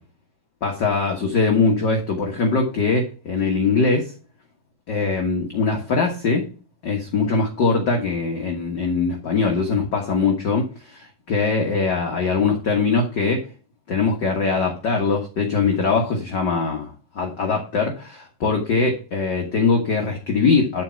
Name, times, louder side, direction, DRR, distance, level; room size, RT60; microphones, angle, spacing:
voice 1, 0.6-4.1 4.9-6.5 6.8-13.4 13.9-20.8, left 4 dB, 45° left, 1 dB, 1.5 m, -22 dB
12.0 x 4.6 x 5.7 m, 0.36 s
omnidirectional pair, 3.7 m